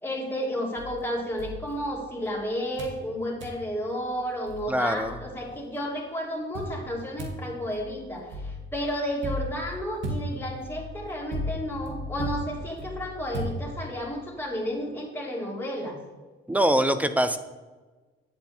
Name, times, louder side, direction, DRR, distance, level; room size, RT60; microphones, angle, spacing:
voice 1, 0.0-16.0, equal, 10° left, -2 dB, 3.0 m, -32 dB
sound 1, 0.8-2.3 2.8-3.0 3.4-3.6 4.2-4.3 4.5-5.6 6.5-14.1, equal, 70° right, 2.1 m, -36 dB
voice 2, 4.7-5.2 16.5-17.4, right 1 dB, 5° right, 11 dB, 0.8 m, -23 dB
9.6 x 8.3 x 4.4 m, 1.3 s
cardioid pair, 90°, 20 cm